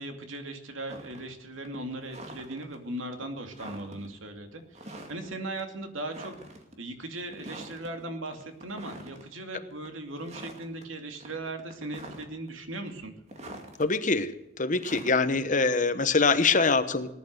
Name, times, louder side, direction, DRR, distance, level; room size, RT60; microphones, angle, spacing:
voice 1, 0.0-6.3 6.8-13.1, right 2 dB, 90° right, 5 dB, 2.6 m, -38 dB
sound 1, 0.9-1.3 1.6-2.8 3.2-3.3 3.5-4.1 4.7-5.3 5.6-5.7 6.1-6.8 7.3-7.9 8.3-9.3 9.7-9.9 10.2-10.9 11.2-12.5 12.9-13.8 14.8-16.5, right 1 dB, 35° right, 2.4 m, -45 dB
voice 2, 13.8-14.3 14.6-17.1, left 4 dB, 40° left, 11 dB, 1.1 m, -24 dB
19.0 x 11.5 x 6.7 m, 0.89 s
head